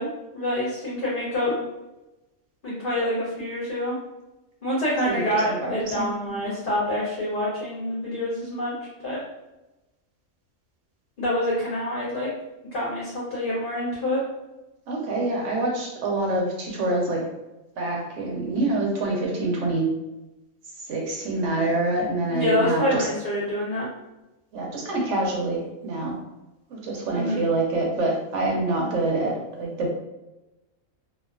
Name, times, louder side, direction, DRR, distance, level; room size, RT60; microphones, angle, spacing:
voice 1, 0.0-1.6 2.6-4.0 4.6-8.7 9.0-9.2 11.2-12.3 12.7-14.2 22.3-23.9 27.1-27.4, left 1 dB, 55° left, -6 dB, 0.7 m, -26 dB
voice 2, 5.0-6.5 14.9-17.2 17.8-19.8 20.9-23.1 24.5-26.2 26.7-29.3 29.6-29.9, right 2 dB, 70° right, -1 dB, 0.9 m, -26 dB
2.4 x 2.2 x 2.3 m, 1.0 s
omnidirectional pair, 1.4 m